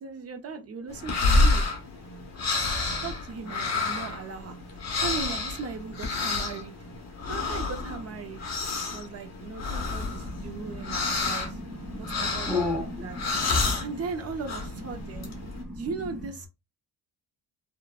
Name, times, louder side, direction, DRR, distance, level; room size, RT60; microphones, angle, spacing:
voice 1, 0.0-1.7 2.7-4.6 5.0-6.7 7.3-11.6 12.0-13.2 13.8-15.4 15.7-16.5, right 5 dB, 35° right, 0.5 m, -38 dB
sound 1, 0.9-15.6, left 3 dB, 40° left, 1.0 m, -29 dB
voice 2, 9.9-13.9 14.7-16.1, left 2 dB, ahead, 0.9 m, -35 dB
3.4 x 2.1 x 2.3 m
wide cardioid pair, 175°, 41 cm